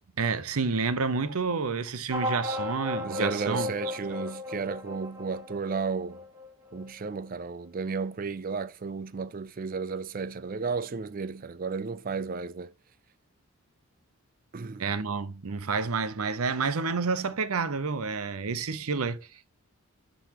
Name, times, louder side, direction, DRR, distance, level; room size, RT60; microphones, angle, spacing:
voice 1, 0.2-3.7 4.0-4.2 14.8-19.5, right 4 dB, 75° right, 0.7 m, -29 dB
sound 1, 2.1-7.1, left 2 dB, 10° right, 1.4 m, -35 dB
voice 2, 3.0-6.3 6.7-12.7 14.5-14.9, right 5 dB, 40° right, 0.4 m, -33 dB
12.0 x 4.1 x 2.9 m
head